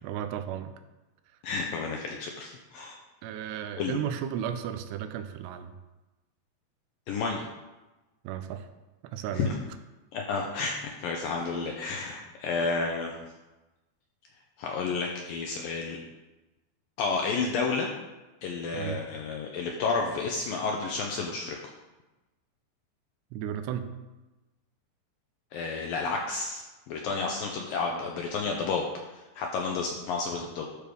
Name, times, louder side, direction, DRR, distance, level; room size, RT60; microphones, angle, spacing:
voice 1, 0.0-0.7 3.2-5.8 8.2-8.7 9.0-9.5 18.7-19.0 23.3-23.9, right 9 dB, 85° right, 9 dB, 2.7 m, -34 dB
voice 2, 1.4-3.0 3.8-4.0 7.1-7.5 9.3-9.5 10.1-13.2 14.6-16.0 17.0-17.9 18.4-21.6 25.5-28.8 29.1-30.7, left 4 dB, 80° left, 1 dB, 2.1 m, -31 dB
12.0 x 5.2 x 6.3 m, 1.1 s
omnidirectional pair, 5.1 m